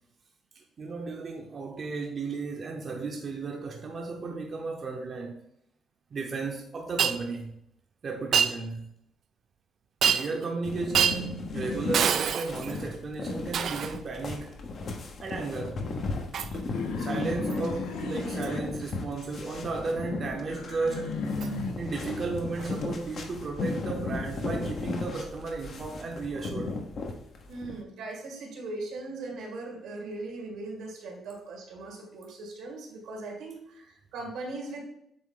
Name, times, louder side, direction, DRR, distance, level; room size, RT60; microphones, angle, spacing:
voice 1, 0.5-5.4 6.1-7.5 8.0-8.9 10.0-14.5 15.2-15.8 17.0-21.1 21.8-26.8, right 3 dB, 45° right, 1 dB, 0.9 m, -34 dB
Shatter, 7.0-7.2 8.3-8.5 10.0-10.4 10.9-11.2 11.9-12.8 13.5-14.0 16.3-16.6 17.5-17.7 18.4-18.6 21.4-21.5 22.6-22.7, right 8 dB, 65° right, 0.4 m, -26 dB
sound 1, 10.6-27.7, left 3 dB, 60° left, 1.1 m, -36 dB
sound 2, 16.7-19.4 19.7-22.0 22.5-24.5, left 3 dB, 85° left, 0.8 m, -36 dB
voice 2, 27.5-34.8, right 2 dB, 90° right, 0 dB, 2.1 m, -39 dB
7.7 x 3.4 x 3.9 m, 0.75 s
cardioid pair, 90°, 0 cm